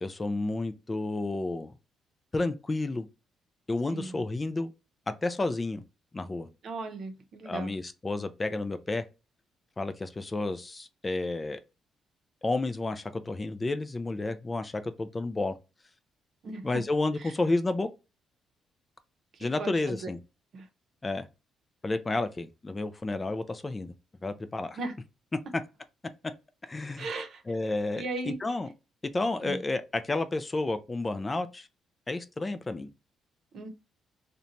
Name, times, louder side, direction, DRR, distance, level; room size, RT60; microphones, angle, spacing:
voice 1, 0.0-1.7 2.3-3.1 3.7-4.7 5.2-5.8 6.1-6.5 7.4-9.0 9.8-11.6 12.4-15.5 16.6-17.9 19.4-20.2 21.0-21.3 21.8-23.9 24.2-24.8 26.6-27.1 27.5-28.7 29.1-31.7 32.1-32.9, left 2 dB, 25° left, 0.3 m, -31 dB
voice 2, 3.9-4.2 6.6-7.7 16.4-16.8 17.2-17.3 19.3-20.1 20.5-20.7 24.8-24.9 27.0-27.4 28.0-28.4 29.4-29.6 33.5-33.7, right 3 dB, 65° right, 0.6 m, -37 dB
2.8 x 2.2 x 2.6 m
cardioid pair, 90°, 0 cm